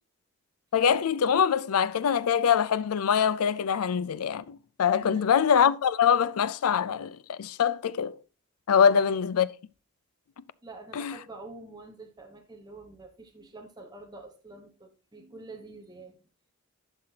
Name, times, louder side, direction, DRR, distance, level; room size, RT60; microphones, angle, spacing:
voice 1, 0.7-8.2 8.7-9.5 10.9-11.2, left 7 dB, 85° left, 0.4 m, -24 dB
voice 2, 5.0-5.3 8.8-9.1 10.6-16.2, right 2 dB, 20° right, 1.1 m, -46 dB
11.5 x 5.8 x 2.8 m
head